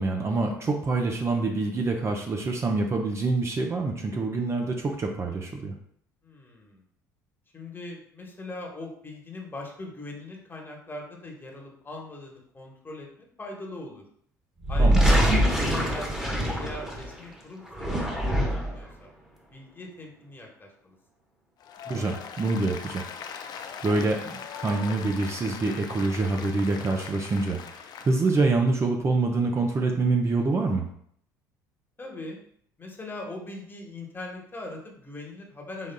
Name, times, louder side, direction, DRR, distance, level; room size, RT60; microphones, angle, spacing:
voice 1, 0.0-5.7 14.8-15.1 21.9-23.0 23.4-30.9, right 3 dB, 30° right, 2 dB, 0.6 m, -26 dB
voice 2, 6.2-6.8 7.5-14.0 14.7-19.1 19.5-20.9 32.0-32.4 32.8-35.9, left 2 dB, 20° left, 0 dB, 1.2 m, -41 dB
sound 1, 14.6-17.2 17.7-18.8, right 1 dB, 5° right, 1.2 m, -23 dB
Applause, 21.6-28.4, left 7 dB, 45° left, 0.5 m, -40 dB
5.3 x 3.5 x 2.2 m, 0.66 s
figure-of-eight pair, 60°, 10 cm